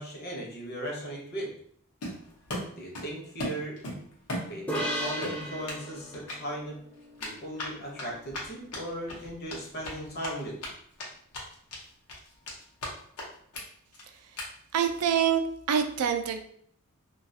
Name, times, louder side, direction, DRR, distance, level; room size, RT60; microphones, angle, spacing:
voice 1, 0.0-1.5 2.8-3.8 4.5-6.8 7.2-10.6, right 1 dB, 45° left, -1 dB, 0.7 m, -37 dB
Run, 2.0-3.1 3.4-4.9 5.2-5.8 6.1-6.4 7.2-10.7 11.0-11.1 11.3-11.8 12.1-12.9 13.2-13.3 13.5-13.6 13.9-14.0 14.4-14.5 14.8-15.0, left 1 dB, 80° left, 0.7 m, -37 dB
sound 1, 4.7-8.2, equal, 5° left, 0.4 m, -37 dB
voice 2, 14.7-15.4 15.7-16.4, right 8 dB, 80° right, 7 dB, 0.3 m, -25 dB
2.3 x 2.3 x 2.6 m, 0.64 s
head